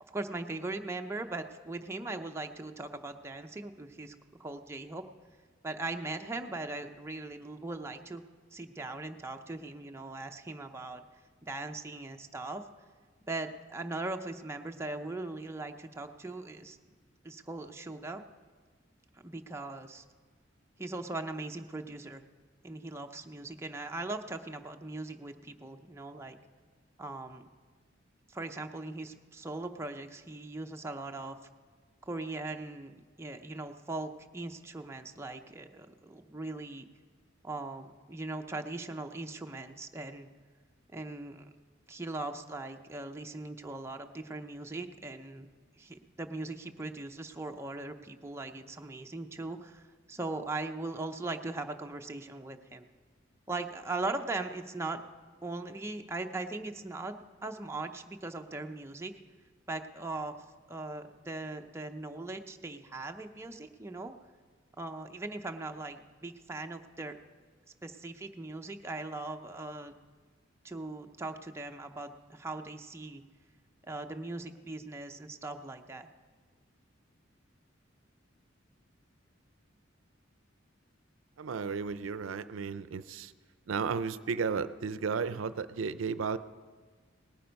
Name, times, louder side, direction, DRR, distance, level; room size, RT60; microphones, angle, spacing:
voice 1, 0.0-4.1 4.4-5.0 5.6-8.2 8.5-11.0 11.4-12.6 13.3-16.8 17.2-18.2 19.2-20.0 20.8-22.2 22.6-26.4 27.0-27.5 28.3-31.4 32.0-36.8 37.4-40.3 40.9-41.5 41.9-45.5 45.8-52.9 53.5-55.0 55.4-57.2 57.4-59.1 59.7-60.3 60.7-64.1 64.8-67.1 67.8-69.9 70.6-73.2 73.9-76.1, right 2 dB, 15° right, 4 dB, 0.5 m, -39 dB
voice 2, 81.4-83.3 83.7-86.4, right 5 dB, 85° right, 14 dB, 0.5 m, -33 dB
18.5 x 8.9 x 5.2 m, 1.5 s
head